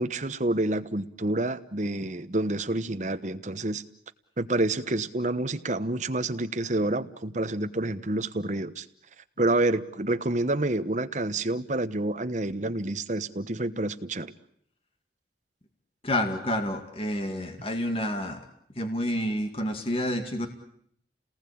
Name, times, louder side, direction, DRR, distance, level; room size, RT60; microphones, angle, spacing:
voice 1, 0.0-3.8 4.4-8.9 9.4-14.3, right 2 dB, 45° right, 10 dB, 1.1 m, -28 dB
voice 2, 16.0-18.4 18.8-20.5, left 1 dB, 30° left, 5 dB, 2.2 m, -29 dB
29.5 x 19.0 x 8.7 m, 0.70 s
head